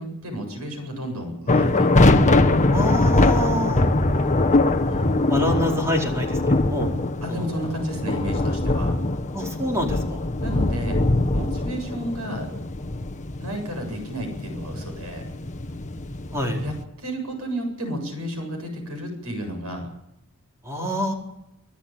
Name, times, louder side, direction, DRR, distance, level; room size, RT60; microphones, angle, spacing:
voice 1, 0.0-2.5 4.9-5.2 7.2-8.9 10.4-11.0 11.3-12.5 13.4-15.3 16.6-19.9, equal, 80° right, 4 dB, 7.8 m, -32 dB
sound 1, 1.5-16.8, left 2 dB, 35° left, 1.2 m, -22 dB
voice 2, 2.7-3.8 5.3-6.9 7.3-7.7 9.3-10.3 16.3-16.6 20.6-21.1, equal, 15° right, 0 dB, 4.6 m, -27 dB
25.0 x 14.5 x 8.9 m, 0.87 s
head